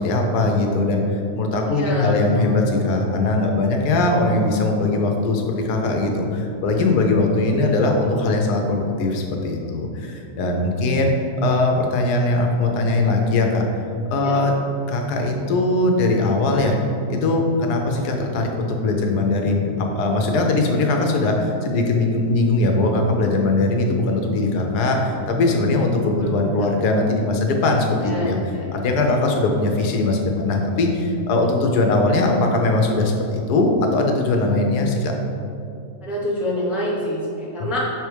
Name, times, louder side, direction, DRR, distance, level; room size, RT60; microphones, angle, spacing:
voice 1, 0.0-11.1 11.4-13.6 14.1-14.5 14.9-16.8 17.1-35.1 37.6-37.7, left 2 dB, 80° left, 2 dB, 1.3 m, -20 dB
voice 2, 1.7-2.6 7.5-7.7 14.2-14.4 26.2-26.7 28.0-28.6 36.0-37.8, left 1 dB, ahead, -5 dB, 0.5 m, -27 dB
6.0 x 3.4 x 4.6 m, 2.6 s
omnidirectional pair, 1.7 m